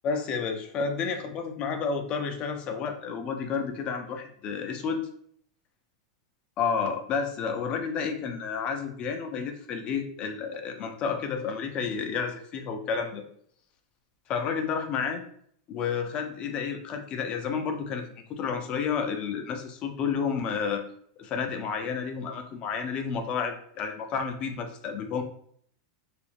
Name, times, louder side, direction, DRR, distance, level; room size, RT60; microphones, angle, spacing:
voice 1, 0.0-5.0 6.6-13.2 14.3-15.2 15.7-20.8 21.2-25.2, left 6 dB, 35° left, 6 dB, 0.4 m, -31 dB
2.4 x 2.0 x 3.2 m, 0.63 s
hypercardioid pair, 120°, 3 cm